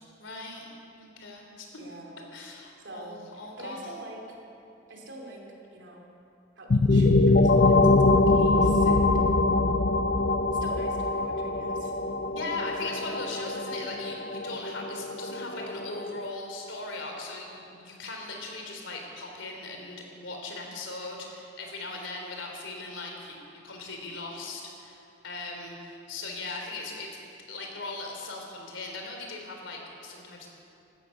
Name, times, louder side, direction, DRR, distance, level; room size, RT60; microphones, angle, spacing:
voice 1, 0.2-1.7 2.3-3.9 12.3-27.1 27.5-30.5, left 3 dB, 90° left, 1 dB, 3.3 m, -39 dB
voice 2, 1.8-2.3 2.8-3.2 3.6-4.2 4.9-5.4 5.7-6.0 6.6-7.1 7.4-9.2 10.5-11.9, right 1 dB, 75° right, -1 dB, 3.2 m, -45 dB
sound 1, 6.7-16.3, left 2 dB, 55° left, 0.6 m, -23 dB
16.5 x 13.0 x 6.4 m, 2.7 s
head